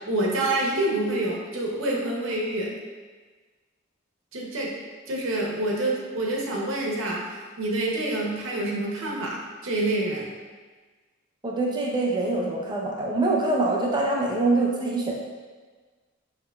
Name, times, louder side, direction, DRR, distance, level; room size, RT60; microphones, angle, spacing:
voice 1, 0.1-2.7 4.3-4.7 5.1-7.2 7.6-10.3, right 1 dB, 75° right, -2 dB, 0.8 m, -27 dB
voice 2, 11.4-15.1, right 2 dB, 20° right, -2 dB, 0.6 m, -24 dB
6.0 x 2.9 x 2.3 m, 1.4 s
head